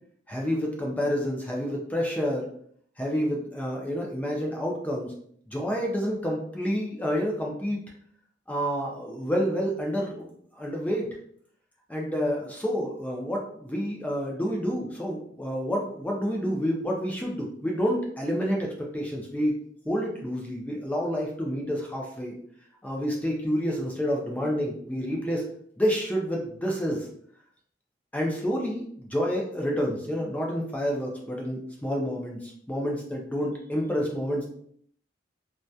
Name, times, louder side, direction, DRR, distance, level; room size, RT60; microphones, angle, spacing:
voice 1, 0.3-2.5 3.0-5.1 5.5-7.8 8.5-10.3 10.6-11.1 11.9-18.7 18.9-19.5 19.9-22.3 22.8-25.4 25.8-27.1 28.1-34.5, equal, 10° left, -1 dB, 0.4 m, -29 dB
2.2 x 2.2 x 2.6 m, 0.62 s
head